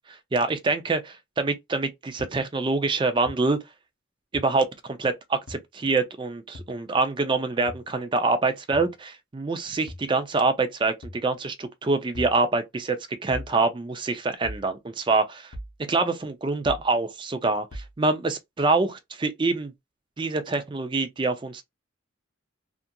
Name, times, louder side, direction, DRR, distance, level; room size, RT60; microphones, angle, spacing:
voice 1, 0.3-3.6 4.3-15.5 15.9-19.7 20.2-21.6, right 3 dB, 25° right, 0.3 m, -25 dB
sound 1, 2.2-2.3 3.3-3.4 4.3-4.4 5.5-5.6 6.5-6.7 7.7-7.9 8.7-8.9 9.9-10.1 11.0-11.2 12.1-12.4 13.3-13.5 14.4-14.7 15.5-15.8 16.7-16.9 17.7-17.9, left 1 dB, 65° left, 0.7 m, -38 dB
2.7 x 2.4 x 2.2 m
head